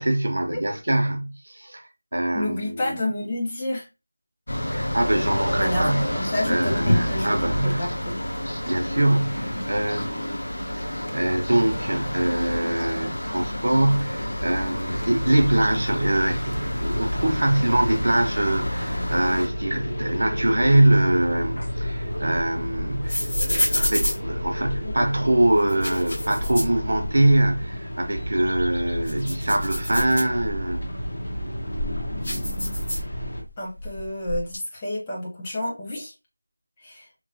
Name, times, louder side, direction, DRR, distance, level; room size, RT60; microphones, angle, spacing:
voice 1, 0.0-3.0 4.7-6.1 6.5-7.9 8.6-10.4 10.7-10.9 11.1-30.9, right 1 dB, 55° right, 0.6 m, -23 dB
voice 2, 2.3-3.9 5.6-7.3 7.6-8.2 24.8-25.1 33.6-36.1 36.8-37.1, left 1 dB, 10° left, 0.4 m, -30 dB
sound 1, 4.5-19.5, equal, 70° left, 0.7 m, -29 dB
sound 2, 13.6-33.4, equal, 90° left, 1.0 m, -31 dB
sound 3, 21.6-25.0 25.6-27.4 27.8-27.9 28.4-30.8 31.3-33.5 33.8-34.6, left 1 dB, 50° left, 1.2 m, -29 dB
3.0 x 2.1 x 2.6 m
figure-of-eight pair, 175°, 0 cm